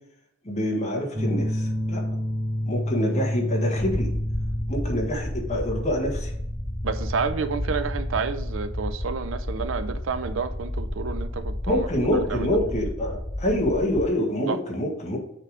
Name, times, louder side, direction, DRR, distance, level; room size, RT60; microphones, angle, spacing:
voice 1, 0.4-2.0 2.7-4.1 4.7-6.3 11.7-15.2, left 1 dB, 35° left, 1.6 m, -26 dB
sound 1, 1.1-12.3, equal, 20° right, 1.1 m, -31 dB
sound 2, 3.8-14.1, left 1 dB, 10° left, 0.5 m, -32 dB
voice 2, 6.8-11.9 12.3-12.6 14.5-14.6, right 5 dB, 70° right, 0.5 m, -29 dB
6.6 x 3.9 x 4.9 m
head